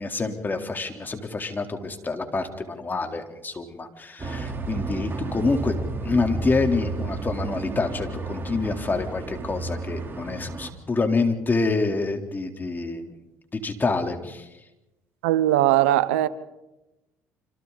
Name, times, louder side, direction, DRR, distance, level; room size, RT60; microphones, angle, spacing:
voice 1, 0.0-5.7 6.0-13.1 13.6-14.5, left 3 dB, 30° left, 3.7 m, -27 dB
sound 1, 4.2-10.7, right 3 dB, 35° right, 3.7 m, -32 dB
voice 2, 15.2-16.3, right 14 dB, 90° right, 0.9 m, -19 dB
28.0 x 26.0 x 4.1 m
hypercardioid pair, 65°, 7 cm